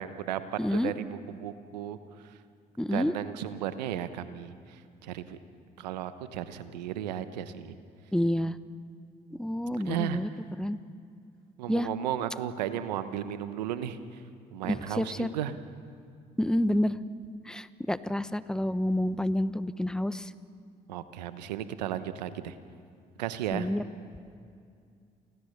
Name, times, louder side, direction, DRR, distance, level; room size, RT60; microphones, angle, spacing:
voice 1, 0.0-0.4 0.7-2.0 2.2-2.3 2.9-5.4 5.8-7.8 9.8-10.2 11.6-14.2 14.5-15.6 20.9-22.6 23.2-23.7, right 10 dB, 85° right, 12 dB, 1.0 m, -34 dB
voice 2, 0.6-0.9 2.8-3.1 8.1-8.6 9.4-10.3 10.6-10.8 11.7-11.9 14.6-15.3 16.4-17.0 17.4-20.3 23.5-23.8, left 1 dB, 5° left, 14 dB, 1.1 m, -28 dB
29.0 x 17.5 x 6.7 m, 2.3 s
hypercardioid pair, 50°, 21 cm